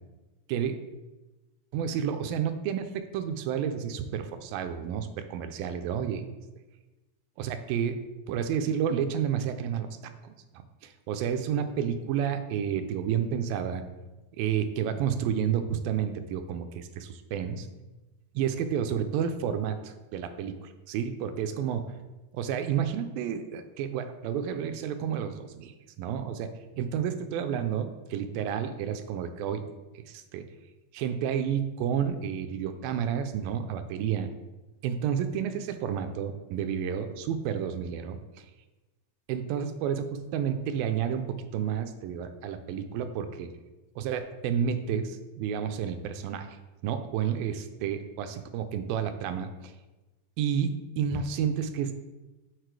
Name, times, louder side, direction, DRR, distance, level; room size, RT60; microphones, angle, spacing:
voice 1, 1.7-6.3 7.4-8.0 8.3-9.9 10.2-10.3 10.8-13.8 14.4-17.7 18.4-21.8 22.3-25.7 26.0-29.7 30.0-30.4 30.9-34.3 34.8-38.5 39.3-43.5 44.0-46.6 46.8-49.7 50.4-51.9, right 8 dB, 85° right, 8 dB, 2.2 m, -30 dB
6.6 x 4.1 x 4.6 m, 1.1 s
omnidirectional pair, 4.1 m